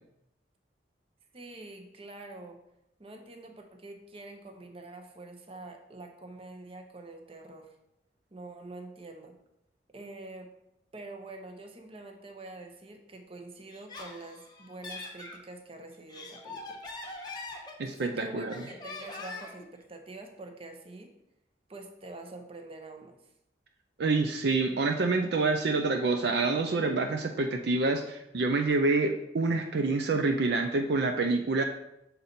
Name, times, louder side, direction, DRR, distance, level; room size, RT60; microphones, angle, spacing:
voice 1, 1.3-2.6 3.0-7.7 8.3-9.4 9.9-10.5 10.9-16.8 18.0-21.1 21.7-23.2, right 2 dB, 30° right, 4 dB, 0.7 m, -46 dB
Laughter, 13.7-15.4 15.9-18.1 18.5-19.7, left 3 dB, 25° left, 0.8 m, -42 dB
voice 2, 17.8-18.5 24.0-31.6, right 3 dB, 60° right, 4 dB, 0.5 m, -27 dB
6.6 x 3.9 x 4.2 m, 0.82 s
head